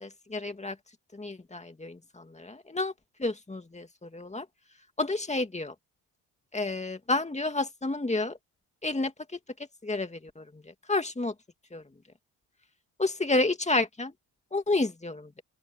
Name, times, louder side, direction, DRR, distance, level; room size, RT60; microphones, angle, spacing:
voice 1, 0.0-0.8 1.1-2.9 3.2-4.5 5.0-5.7 6.5-8.4 8.8-9.1 9.8-10.4 10.9-11.3 11.7-11.8 13.0-14.1 14.5-15.3, left 2 dB, 15° left, 2.4 m, -30 dB
open air
cardioid pair, 80°, 40 cm